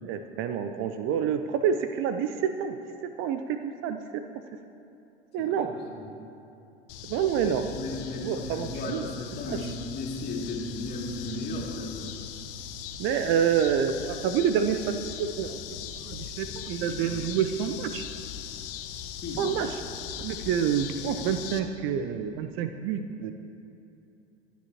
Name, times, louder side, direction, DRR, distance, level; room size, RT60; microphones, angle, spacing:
voice 1, 0.0-2.8 3.0-4.2 5.3-5.7 7.0-7.7 8.2-9.1 9.5-9.7 13.0-15.6 16.0-18.0 19.4-19.8 20.2-23.3, right 8 dB, 40° right, 8 dB, 0.7 m, -28 dB
sound 1, 6.9-21.6, left 9 dB, 55° left, 1.2 m, -40 dB
voice 2, 7.4-9.6 9.9-12.1 16.5-17.2 19.2-19.4, left 2 dB, 30° left, -2 dB, 2.8 m, -36 dB
24.5 x 10.5 x 3.0 m, 2.8 s
figure-of-eight pair, 85°, 34 cm